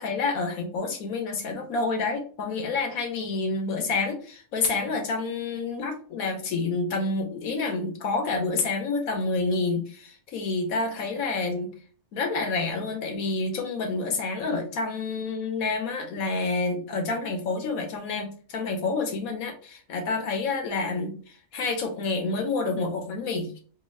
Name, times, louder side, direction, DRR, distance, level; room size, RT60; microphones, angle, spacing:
voice 1, 0.0-11.7 12.1-23.6, left 3 dB, 80° left, 4 dB, 1.3 m, -28 dB
3.8 x 2.7 x 2.6 m, 0.42 s
omnidirectional pair, 1.5 m